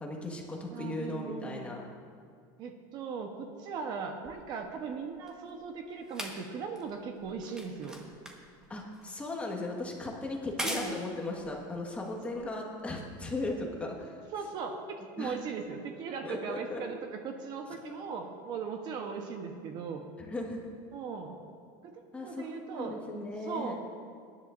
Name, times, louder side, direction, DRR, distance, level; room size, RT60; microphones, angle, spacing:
voice 1, 0.0-1.8 8.7-14.2 15.2-15.3 16.2-16.8 17.8-17.9 20.2-20.6 22.1-23.8, left 2 dB, 10° left, -1 dB, 1.5 m, -37 dB
voice 2, 0.7-1.7 2.6-8.0 10.6-11.0 14.3-20.0 20.9-21.4 21.8-22.9 23.4-23.8, right 5 dB, 40° right, 4 dB, 1.0 m, -39 dB
sound 1, 4.2-12.9 13.7-13.8, equal, 5° right, 1.3 m, -43 dB
21.0 x 10.5 x 2.6 m, 2.2 s
supercardioid pair, 150°, 11 cm